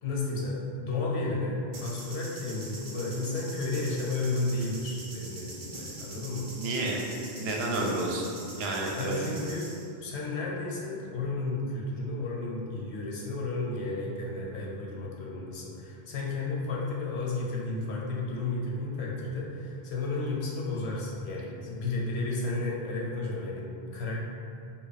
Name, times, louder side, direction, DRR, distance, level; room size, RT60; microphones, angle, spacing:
voice 1, 0.0-6.5 9.0-9.7 10.0-24.2, left 2 dB, 80° left, -3 dB, 0.9 m, -32 dB
sound 1, 1.7-9.9, right 2 dB, 40° right, 0.4 m, -44 dB
voice 2, 6.6-7.0 7.4-9.3, right 2 dB, 75° right, -2 dB, 0.8 m, -30 dB
3.4 x 2.2 x 3.9 m, 2.5 s
omnidirectional pair, 1.1 m